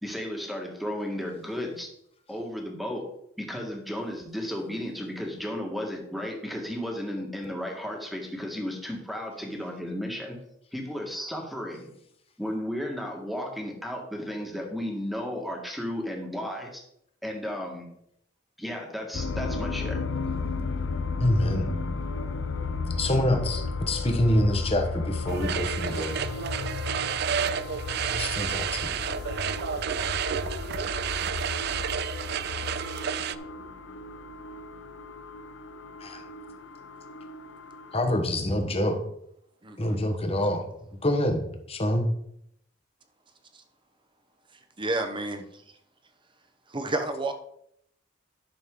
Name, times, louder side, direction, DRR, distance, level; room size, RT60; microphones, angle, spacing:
voice 1, 0.0-1.9 2.3-3.0 3.4-10.4 10.7-11.9 12.4-16.8 17.2-17.9 18.6-20.0, equal, ahead, 1 dB, 1.6 m, -34 dB
sound 1, 19.1-38.0, left 3 dB, 65° left, 0.5 m, -34 dB
voice 2, 21.2-21.7 23.0-26.2 28.1-29.0 36.0-36.2 37.9-39.0 39.8-40.7 41.0-41.4 41.7-42.1, left 1 dB, 30° left, 5 dB, 1.3 m, -26 dB
sound 2, 25.3-33.4, right 8 dB, 55° right, 0.4 m, -31 dB
voice 3, 39.6-40.0 44.8-45.5 46.7-47.3, right 2 dB, 25° right, 6 dB, 1.0 m, -30 dB
11.5 x 6.4 x 3.8 m, 0.74 s
head